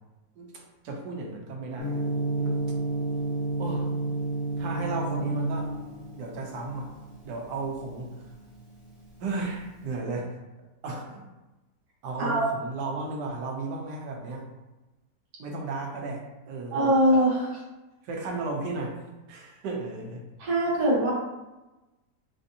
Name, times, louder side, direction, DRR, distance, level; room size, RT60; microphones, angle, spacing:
voice 1, 0.4-2.0 2.4-2.6 3.6-3.9 4.6-5.7 6.2-6.9 7.2-8.2 9.2-10.4 10.8-11.2 12.0-14.4 15.4-16.9 18.0-19.0 19.3-20.2, right 3 dB, 80° right, 0 dB, 1.3 m, -34 dB
Gong, 1.8-9.9, right 2 dB, 65° left, 1.9 m, -32 dB
voice 2, 16.7-17.6 20.4-21.1, right 1 dB, 65° right, -6 dB, 1.5 m, -22 dB
4.3 x 2.5 x 2.7 m, 1.1 s
omnidirectional pair, 1.8 m